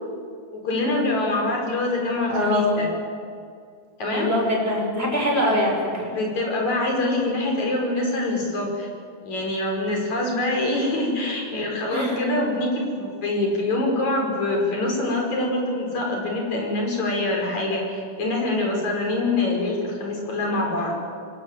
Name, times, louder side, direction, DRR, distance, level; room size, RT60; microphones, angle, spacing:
voice 1, 0.5-2.9 4.0-4.3 5.3-5.7 6.1-8.9 9.2-21.0, left 2 dB, 55° left, 1 dB, 6.5 m, -25 dB
voice 2, 2.3-2.8 4.1-6.1 11.9-12.2, left 1 dB, 15° right, -1 dB, 6.1 m, -23 dB
25.0 x 21.5 x 9.4 m, 2.3 s
omnidirectional pair, 4.0 m